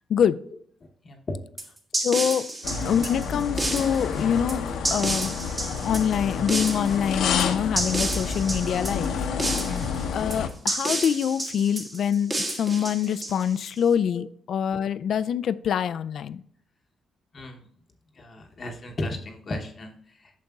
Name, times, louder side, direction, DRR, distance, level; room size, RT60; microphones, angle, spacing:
sound 1, 1.6-13.8, right 1 dB, 25° right, 1.7 m, -31 dB
voice 1, 2.0-2.5 2.8-4.6 4.9-5.4 5.8-9.2 10.1-16.4, left 8 dB, 60° left, 14 dB, 0.3 m, -25 dB
sound 2, 2.6-10.5, left 6 dB, 85° left, 0.8 m, -29 dB
voice 2, 17.3-17.7 18.1-20.4, left 1 dB, 35° left, 3 dB, 0.9 m, -36 dB
9.1 x 6.5 x 2.3 m, 0.63 s
cardioid pair, 135°, 0 cm